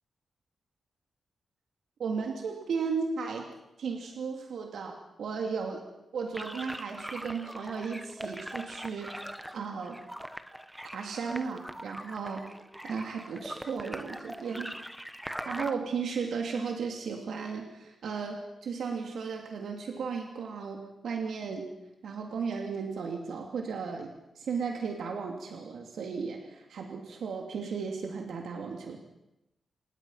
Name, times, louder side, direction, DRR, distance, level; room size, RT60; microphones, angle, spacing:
voice 1, 2.0-3.5 3.8-5.9 6.1-10.0 10.9-12.5 12.8-14.8 15.4-21.7 22.0-29.0, right 5 dB, 75° right, 2 dB, 3.1 m, -35 dB
sound 1, 6.3-15.7, equal, 5° right, 1.1 m, -42 dB
28.0 x 20.0 x 5.9 m, 0.91 s
wide cardioid pair, 180°, 0 cm